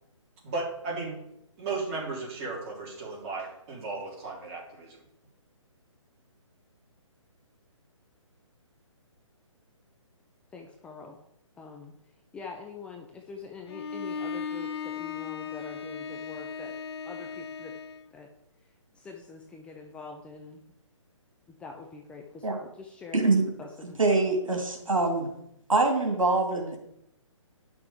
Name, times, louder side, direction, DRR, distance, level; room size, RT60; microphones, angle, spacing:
voice 1, 0.4-1.2 1.6-5.0, right 3 dB, 30° right, -4 dB, 3.5 m, -35 dB
voice 2, 10.5-11.2 11.6-11.9 12.3-16.8 17.0-17.7 18.1-18.3 18.9-20.6 21.5-22.5 22.8-24.0, left 4 dB, 5° left, 2 dB, 0.5 m, -44 dB
Bowed string instrument, 13.7-18.1, left 6 dB, 50° left, 0.7 m, -37 dB
voice 3, 23.1-23.4 23.8-25.3 25.7-26.8, right 3 dB, 85° right, 2 dB, 2.6 m, -24 dB
9.9 x 6.2 x 4.9 m, 0.78 s
hypercardioid pair, 145°, 17 cm